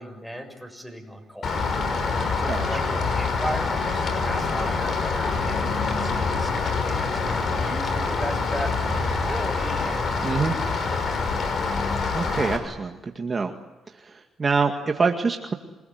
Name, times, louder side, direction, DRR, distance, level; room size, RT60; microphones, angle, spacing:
voice 1, 0.0-1.7 2.4-7.3 7.6-10.4, equal, 5° left, 5 dB, 7.1 m, -37 dB
Rain, 1.4-12.6, left 4 dB, 55° left, 5.9 m, -25 dB
voice 2, 10.2-10.5 12.1-13.5 13.9-15.5, right 4 dB, 35° right, 4 dB, 2.0 m, -25 dB
28.0 x 20.5 x 9.5 m, 1.1 s
cardioid pair, 90°, 0 cm